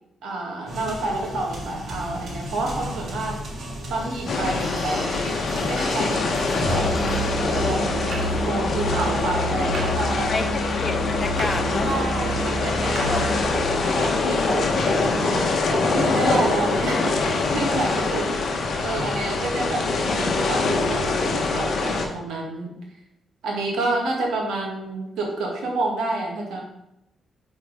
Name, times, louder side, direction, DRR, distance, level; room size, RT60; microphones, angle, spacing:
voice 1, 0.2-3.4 3.9-6.9 7.4-10.3 11.8-13.3 13.8-18.4 18.8-22.7 23.4-26.6, right 2 dB, 90° right, -1 dB, 1.7 m, -29 dB
sound 1, 0.7-9.1, equal, 55° right, 1.8 m, -36 dB
sound 2, 4.3-22.0, left 3 dB, 60° left, 1.0 m, -24 dB
Musical instrument, 6.6-13.7, right 1 dB, 70° right, 1.0 m, -29 dB
voice 2, 10.3-11.9 13.1-13.3 14.2-14.5, left 3 dB, 30° left, 7 dB, 0.6 m, -30 dB
5.9 x 4.2 x 4.9 m, 0.84 s
cardioid pair, 120°, 0 cm